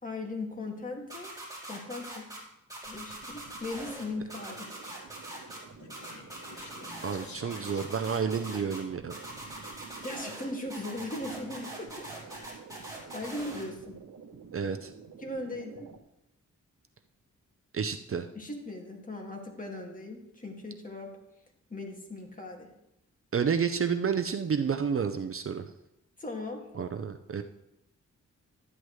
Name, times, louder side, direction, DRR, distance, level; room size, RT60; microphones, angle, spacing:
voice 1, 0.0-1.3 1.7-2.3 2.8-4.7 5.3-5.4 10.0-12.6 13.1-14.0 15.2-15.9 18.3-21.1 21.7-22.7 26.2-26.7, left 2 dB, 25° left, 0 dB, 2.1 m, -38 dB
sound 1, 1.1-2.4 2.7-4.0 4.3-5.6 5.9-7.2 7.5-8.8 9.1-10.4 10.7-13.6, right 1 dB, 10° right, 3.9 m, -42 dB
sound 2, 2.8-16.0, right 5 dB, 75° right, 1.1 m, -50 dB
Speech, 5.4-8.9, left 3 dB, 65° left, 1.7 m, -51 dB
voice 2, 7.0-9.2 14.5-14.9 17.7-18.3 23.3-25.7 26.8-27.4, right 6 dB, 45° right, 9 dB, 0.6 m, -30 dB
12.0 x 9.7 x 3.2 m, 0.86 s
wide cardioid pair, 100°, 31 cm